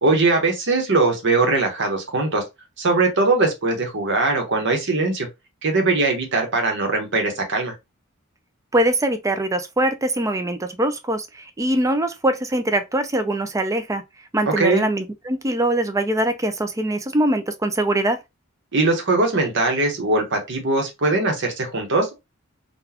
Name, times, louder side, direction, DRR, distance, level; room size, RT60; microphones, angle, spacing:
voice 1, 0.0-2.4 2.8-5.3 5.6-7.7 14.6-14.9 18.7-22.1, right 3 dB, 60° right, 1.0 m, -21 dB
voice 2, 8.7-14.0 14.3-18.2, right 1 dB, 15° right, 0.4 m, -22 dB
3.9 x 2.4 x 2.8 m
head